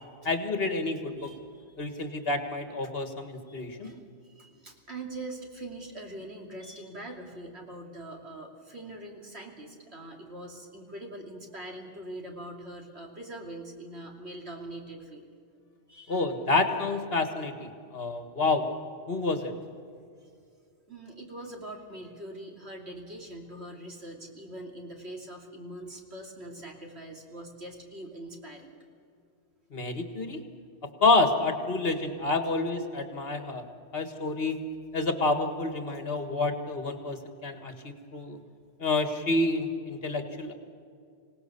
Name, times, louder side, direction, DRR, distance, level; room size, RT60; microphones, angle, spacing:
voice 1, 0.2-1.3 1.8-3.9 16.1-18.7 19.1-19.5 29.7-30.4 31.0-33.7 33.9-34.6 34.9-38.4 38.8-40.5, left 3 dB, 60° left, 7 dB, 1.9 m, -28 dB
voice 2, 1.2-2.2 3.5-15.3 15.9-16.2 20.2-20.3 20.9-28.7 32.9-33.0 35.9-36.0 37.8-37.9, right 1 dB, 70° right, 1 dB, 3.2 m, -43 dB
26.0 x 18.0 x 6.9 m, 2.3 s
omnidirectional pair, 1.2 m